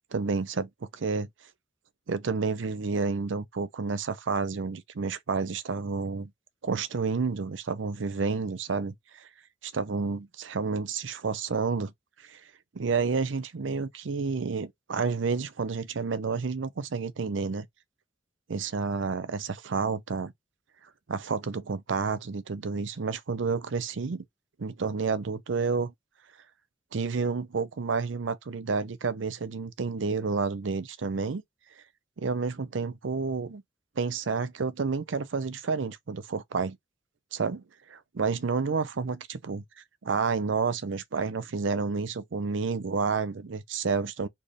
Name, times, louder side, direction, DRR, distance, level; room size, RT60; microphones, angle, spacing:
voice 1, 0.1-1.3 2.1-6.3 6.6-9.3 9.6-11.9 12.2-12.4 12.7-17.7 18.5-20.3 21.1-24.2 24.6-25.9 26.9-31.4 32.2-33.6 34.0-36.8 37.3-39.6 40.0-44.3, right 4 dB, 90° right, 0.6 m, -30 dB
4.3 x 3.5 x 3.1 m
head